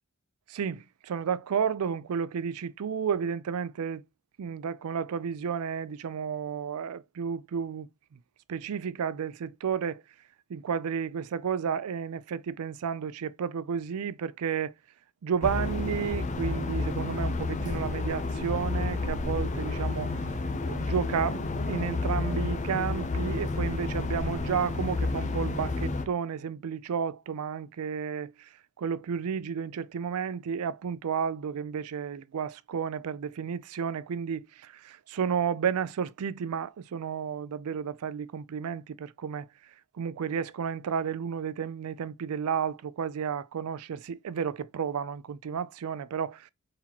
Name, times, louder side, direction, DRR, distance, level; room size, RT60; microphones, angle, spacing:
voice 1, 0.5-4.0 4.4-7.9 8.5-10.0 10.5-14.7 15.2-20.1 20.6-28.5 28.8-39.5 39.9-46.5, right 7 dB, 90° right, 0.4 m, -32 dB
sound 1, 15.4-26.1, left 3 dB, 35° left, 0.6 m, -30 dB
4.3 x 4.0 x 2.8 m
head